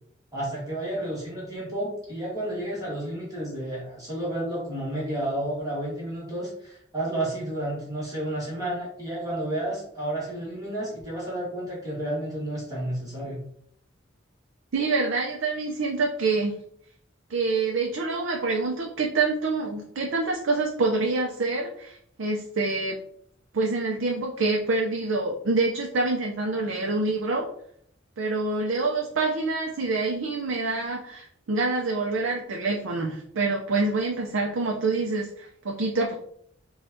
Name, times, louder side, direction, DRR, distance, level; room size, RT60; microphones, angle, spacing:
voice 1, 0.3-13.4, right 1 dB, 20° right, -7 dB, 1.3 m, -31 dB
voice 2, 14.7-16.6 17.3-23.0 23.5-27.5 28.2-36.2, right 3 dB, 70° right, 0 dB, 0.5 m, -26 dB
5.0 x 2.3 x 2.7 m, 0.67 s
head